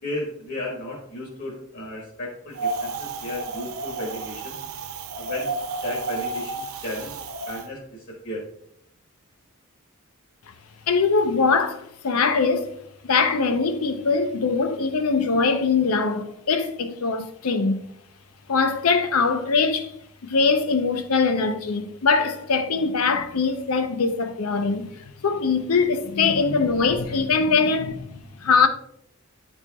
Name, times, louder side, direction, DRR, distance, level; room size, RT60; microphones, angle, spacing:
voice 1, 0.0-4.6 5.1-5.5 5.8-8.4, left 1 dB, 55° left, 1.2 m, -34 dB
Wind, 2.6-7.7, right 3 dB, 80° right, 0.5 m, -32 dB
voice 2, 10.9-12.8 13.0-17.8 18.5-19.9 20.2-28.7, left 4 dB, 90° left, 0.6 m, -22 dB
9.8 x 4.3 x 2.3 m
head